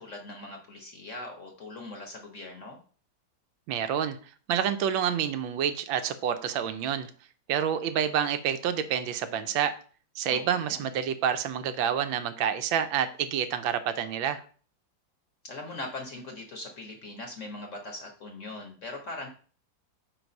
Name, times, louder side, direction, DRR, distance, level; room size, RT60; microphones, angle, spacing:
voice 1, 0.0-2.8 10.3-11.0 15.4-19.3, left 2 dB, 50° left, 2 dB, 1.0 m, -41 dB
voice 2, 3.7-4.2 4.5-7.1 7.5-9.7 10.2-14.4, right 8 dB, 85° right, 10 dB, 1.4 m, -28 dB
4.6 x 4.1 x 5.2 m, 0.41 s
omnidirectional pair, 2.1 m